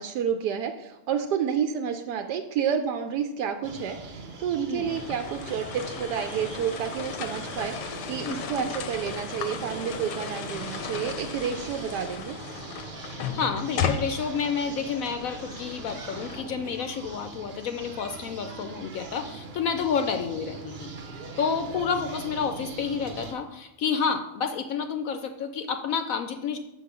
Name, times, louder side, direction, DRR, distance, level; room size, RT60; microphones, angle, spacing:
voice 1, 0.0-12.3, right 7 dB, 80° right, 6 dB, 1.2 m, -30 dB
sound 1, 3.6-23.3, right 4 dB, 45° right, 0.9 m, -41 dB
sound 2, 4.9-16.4, left 7 dB, 90° left, 1.3 m, -36 dB
voice 2, 8.2-8.7 13.1-20.9 21.4-26.6, left 6 dB, 70° left, 7 dB, 0.9 m, -30 dB
6.4 x 4.7 x 6.7 m, 0.92 s
omnidirectional pair, 1.8 m